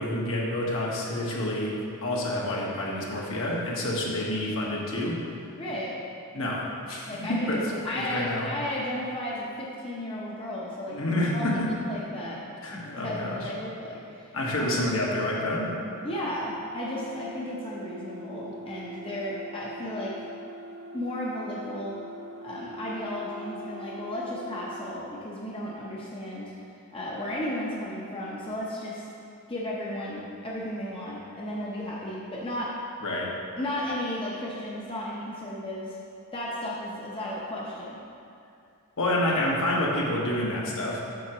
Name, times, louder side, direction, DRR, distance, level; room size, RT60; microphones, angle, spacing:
voice 1, 0.0-1.7 2.0-5.2 6.3-7.6 7.9-8.5 10.9-11.7 12.6-13.5 14.3-15.7 33.0-33.3 39.0-41.0, left 1 dB, 65° left, -4 dB, 1.4 m, -28 dB
voice 2, 5.6-6.0 7.1-12.4 12.7-14.3 14.6-14.7 16.0-20.2 20.9-21.9 22.4-26.5 26.9-29.0 29.5-32.8 33.6-36.0 36.3-38.0, left 1 dB, 25° left, -5 dB, 0.7 m, -34 dB
sound 1, 15.9-25.0, equal, 60° right, 0.8 m, -43 dB
8.3 x 7.2 x 3.0 m, 2.6 s
head